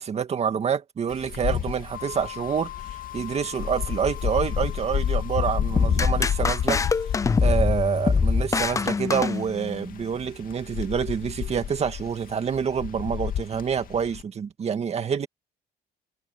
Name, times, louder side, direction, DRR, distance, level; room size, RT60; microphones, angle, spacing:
voice 1, 0.0-2.7 3.1-6.8 7.4-15.3, right 7 dB, 40° right, 2.1 m, -27 dB
Wind, 1.1-14.2, left 9 dB, 55° left, 2.2 m, -30 dB
sound 1, 1.9-8.4, left 15 dB, 80° left, 3.8 m, -43 dB
sound 2, 5.8-9.9, left 5 dB, 20° left, 0.5 m, -23 dB
cardioid pair, 110°, 17 cm